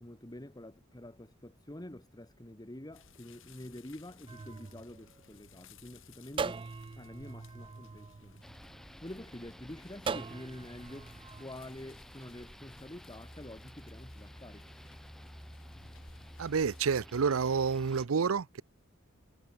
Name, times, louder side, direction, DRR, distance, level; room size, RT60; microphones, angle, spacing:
voice 1, 0.0-8.4 9.0-14.6, left 1 dB, 20° left, 1.6 m, -47 dB
sound 1, 2.9-17.0, left 4 dB, 65° left, 4.5 m, -60 dB
Bell Water Doppler, 4.3-5.7 6.4-8.9 10.1-11.4, right 5 dB, 25° right, 0.3 m, -41 dB
sound 2, 8.4-18.1, equal, ahead, 1.6 m, -51 dB
voice 2, 16.4-18.6, right 5 dB, 75° right, 0.6 m, -29 dB
head